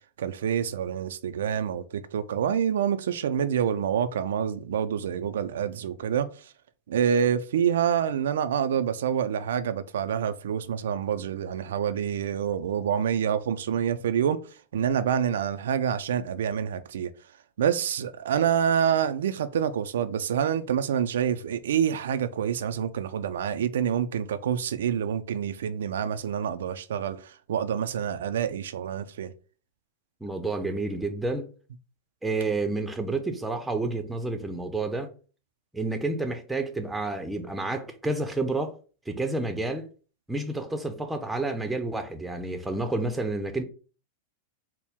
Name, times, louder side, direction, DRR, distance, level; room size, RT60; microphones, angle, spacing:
voice 1, 0.2-6.5 6.9-17.1 17.6-29.3, right 8 dB, 80° right, 0.3 m, -27 dB
voice 2, 30.2-31.5 32.2-35.1 35.7-38.7 39.1-39.9 40.3-43.6, right 2 dB, 5° right, 0.6 m, -30 dB
4.3 x 2.0 x 3.5 m
hypercardioid pair, 130°, 0 cm